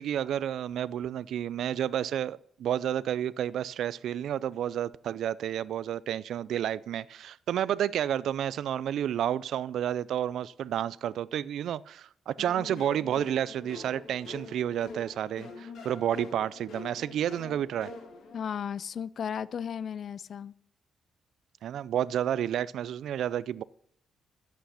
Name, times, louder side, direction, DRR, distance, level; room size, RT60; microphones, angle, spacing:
voice 1, 0.0-17.9 21.6-23.6, right 10 dB, 70° right, 0.4 m, -30 dB
sound 1, 12.4-18.4, left 3 dB, 70° left, 1.6 m, -45 dB
voice 2, 18.3-20.5, left 8 dB, 50° left, 0.4 m, -35 dB
11.5 x 8.2 x 5.6 m
cardioid pair, 160°, 0 cm